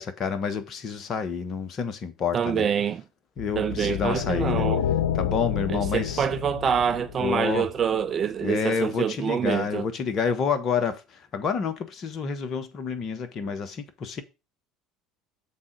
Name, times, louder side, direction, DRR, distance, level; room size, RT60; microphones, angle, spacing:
voice 1, 0.0-2.7 3.4-4.7 5.1-6.3 7.2-7.7 8.4-14.2, left 6 dB, 45° left, 1.1 m, -29 dB
voice 2, 2.3-3.0 3.6-4.8 5.7-9.9, right 7 dB, 35° right, 0.4 m, -26 dB
sound 1, 3.4-7.8, left 10 dB, 75° left, 0.6 m, -29 dB
7.4 x 3.8 x 6.1 m
hypercardioid pair, 70°, 0 cm